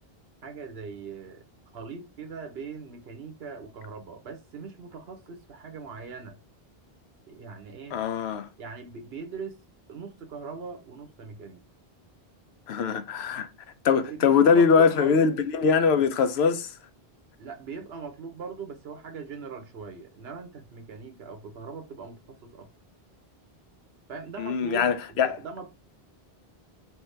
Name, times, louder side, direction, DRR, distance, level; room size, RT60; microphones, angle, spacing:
voice 1, 0.4-1.4 1.7-6.4 7.3-8.0 8.6-9.6 9.9-11.6 13.9-15.4 17.4-22.7 24.1-25.7, right 5 dB, 75° right, 1.1 m, -40 dB
voice 2, 7.9-8.5 12.7-13.5 13.8-16.7 24.4-25.3, left 6 dB, 90° left, 0.9 m, -22 dB
3.5 x 2.9 x 3.2 m
omnidirectional pair, 1.0 m